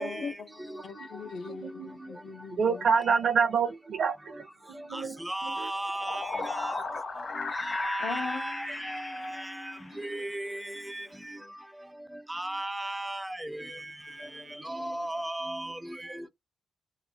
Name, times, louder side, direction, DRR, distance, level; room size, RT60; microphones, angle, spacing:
voice 1, 0.0-3.2 8.0-11.5 14.1-15.0 16.2-16.3, left 4 dB, 65° left, 0.6 m, -42 dB
voice 2, 1.5-1.9 2.6-4.1 4.7-5.7, right 6 dB, 75° right, 0.6 m, -27 dB
voice 3, 5.3-6.3 6.6-6.7 7.6-9.0 10.0-10.6 12.3-13.6 14.7-15.7, right 1 dB, 10° right, 0.3 m, -34 dB
sound 1, 5.7-10.2, left 3 dB, 50° left, 0.9 m, -36 dB
2.9 x 2.1 x 2.7 m
cardioid pair, 105°, 0 cm